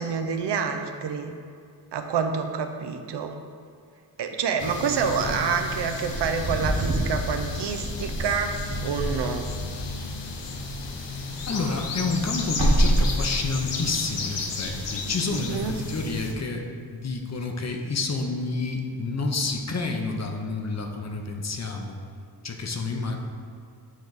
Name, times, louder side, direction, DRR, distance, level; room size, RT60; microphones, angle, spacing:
voice 1, 0.0-1.4 1.9-3.3 4.2-9.5 15.3-15.8, right 6 dB, 75° right, 6 dB, 0.6 m, -28 dB
sound 1, 4.6-16.3, left 3 dB, 90° left, 0.8 m, -33 dB
Wind / Car, 5.1-10.9 11.2-13.7, right 1 dB, 45° right, 1.3 m, -28 dB
voice 2, 11.5-22.0 22.4-23.2, left 3 dB, 40° left, 2 dB, 0.7 m, -29 dB
9.1 x 3.4 x 4.0 m, 2.2 s
wide cardioid pair, 100°, 42 cm